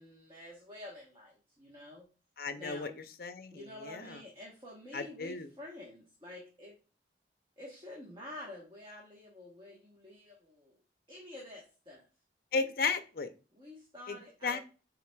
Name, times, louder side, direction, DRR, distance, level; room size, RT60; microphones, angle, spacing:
voice 1, 0.0-2.1 2.6-3.0 3.5-6.7 7.6-10.8 11.1-12.0 13.5-14.6, left 1 dB, 25° right, -3 dB, 1.1 m, -49 dB
voice 2, 2.4-2.9 3.2-4.2 4.9-5.5 12.5-13.3 14.1-14.2 14.4-14.6, left 4 dB, 55° left, 9 dB, 0.5 m, -34 dB
5.8 x 3.9 x 2.3 m, 0.34 s
head